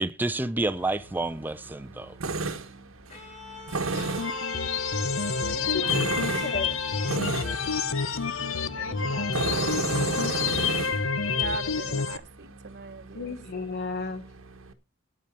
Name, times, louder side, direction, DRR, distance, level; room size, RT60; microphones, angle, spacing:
voice 1, 0.0-2.2, right 2 dB, 10° right, 0.5 m, -29 dB
Tools, 0.6-14.7, right 3 dB, 85° right, 1.2 m, -35 dB
Bowed string instrument, 3.1-9.4, left 2 dB, 35° left, 3.3 m, -43 dB
voice 2, 3.9-4.3 5.7-6.0 6.3-6.7 13.1-14.3, left 4 dB, 50° left, 1.3 m, -34 dB
sound 1, 4.2-12.2, left 5 dB, 70° left, 0.8 m, -28 dB
voice 3, 5.5-6.4 8.7-10.1 11.2-13.3, right 4 dB, 55° right, 0.9 m, -40 dB
9.2 x 8.7 x 6.6 m
head